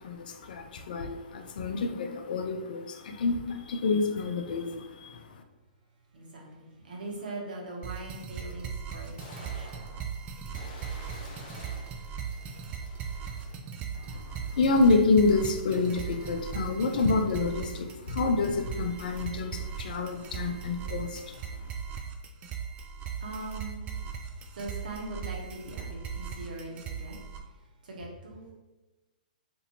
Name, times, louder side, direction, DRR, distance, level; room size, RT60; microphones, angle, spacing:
voice 1, 0.0-5.4 13.9-21.4, left 3 dB, 65° left, 6 dB, 0.4 m, -28 dB
voice 2, 6.1-10.0 23.2-23.8 24.3-27.2 27.4-28.5, right 2 dB, 70° right, -2 dB, 1.0 m, -41 dB
sound 1, 7.8-27.4, right 6 dB, 25° right, 0.3 m, -38 dB
sound 2, 9.2-13.9, left 2 dB, 35° left, 0.8 m, -50 dB
2.7 x 2.6 x 2.7 m, 1.1 s
hypercardioid pair, 130°, 5 cm